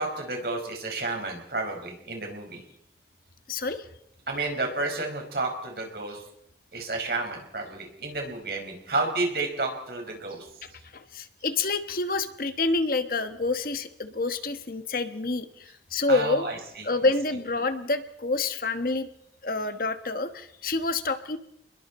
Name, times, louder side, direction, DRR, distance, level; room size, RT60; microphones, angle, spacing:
voice 1, 0.0-2.6 4.3-6.2 6.7-10.4 16.1-16.5, right 2 dB, 60° right, 2 dB, 5.2 m, -31 dB
voice 2, 3.5-3.9 10.6-16.5 16.8-19.1 19.4-21.4, left 3 dB, 55° left, 9 dB, 1.3 m, -28 dB
29.5 x 21.5 x 4.3 m, 0.79 s
head